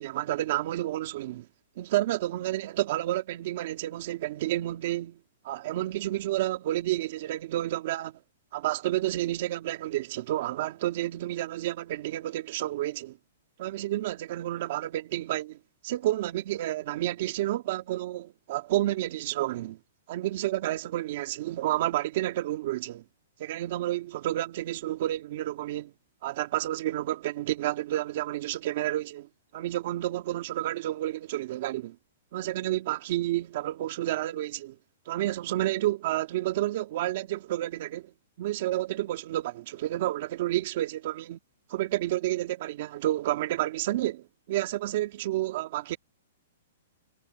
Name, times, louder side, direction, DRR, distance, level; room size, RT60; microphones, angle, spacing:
voice 1, 0.0-1.5 1.8-5.2 5.4-8.2 8.5-13.2 13.6-15.6 15.8-19.8 20.1-23.0 23.4-25.9 26.2-29.3 29.5-32.0 32.3-34.8 35.1-38.1 38.4-41.4 41.7-46.0, right 14 dB, 40° right, 2.2 m, -30 dB
hypercardioid pair, 170°, 0 cm